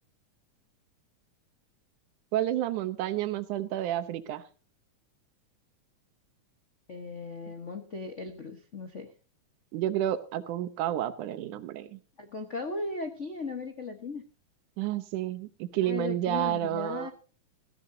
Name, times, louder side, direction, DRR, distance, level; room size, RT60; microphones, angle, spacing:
voice 1, 2.3-4.4 9.7-12.0 14.8-17.1, right 12 dB, 90° right, 12 dB, 2.4 m, -30 dB
voice 2, 6.9-9.1 12.2-14.2 15.8-17.1, left 3 dB, 65° left, 5 dB, 0.7 m, -37 dB
17.0 x 16.0 x 2.7 m, 0.35 s
omnidirectional pair, 3.4 m